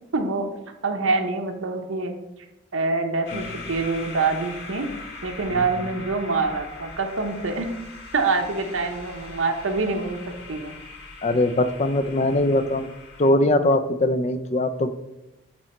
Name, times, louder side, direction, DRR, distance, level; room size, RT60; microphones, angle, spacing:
voice 1, 0.1-0.5 0.8-2.1 2.7-4.9 5.2-7.7 8.1-10.7, right 3 dB, 90° right, 4 dB, 0.7 m, -25 dB
sound 1, 3.3-13.3, left 3 dB, 60° left, 1.7 m, -41 dB
voice 2, 11.2-12.9 13.2-14.9, left 1 dB, 35° left, 10 dB, 0.4 m, -21 dB
8.7 x 3.1 x 4.2 m, 0.94 s
head